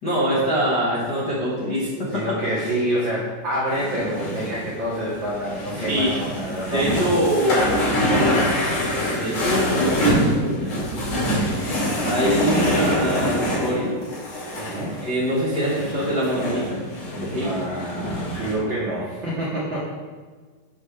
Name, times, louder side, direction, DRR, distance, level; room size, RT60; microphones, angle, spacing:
voice 1, 0.0-2.2 5.8-6.1 6.7-8.2 9.1-10.7 12.0-13.9 15.0-16.8 17.2-17.6, equal, 65° left, -7 dB, 1.0 m, -24 dB
voice 2, 2.1-7.7 10.7-11.0 14.6-15.1 17.4-19.8, right 1 dB, 75° right, -7 dB, 1.1 m, -28 dB
sound 1, 3.7-18.5, equal, 50° left, 3.7 m, -25 dB
8.0 x 6.5 x 3.3 m, 1.4 s
omnidirectional pair, 4.3 m